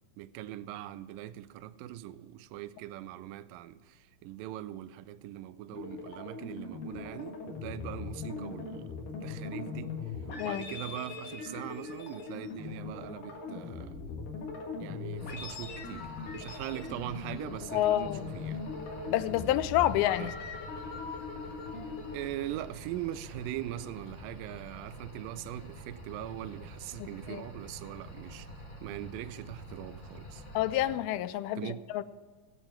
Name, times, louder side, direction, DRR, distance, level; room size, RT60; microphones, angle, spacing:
voice 1, 0.2-8.9 9.2-10.0 10.4-14.0 14.8-18.6 20.2-20.3 22.1-28.5 28.8-30.4 31.6-31.8, right 13 dB, 80° right, 2.2 m, -41 dB
sound 1, 5.7-22.2, left 4 dB, 65° left, 3.2 m, -40 dB
sound 2, 15.2-30.9, equal, 40° left, 0.6 m, -47 dB
voice 2, 17.7-18.3 19.1-20.3 27.0-27.5 30.5-32.0, left 13 dB, 90° left, 2.5 m, -29 dB
18.0 x 7.6 x 4.5 m
omnidirectional pair, 4.2 m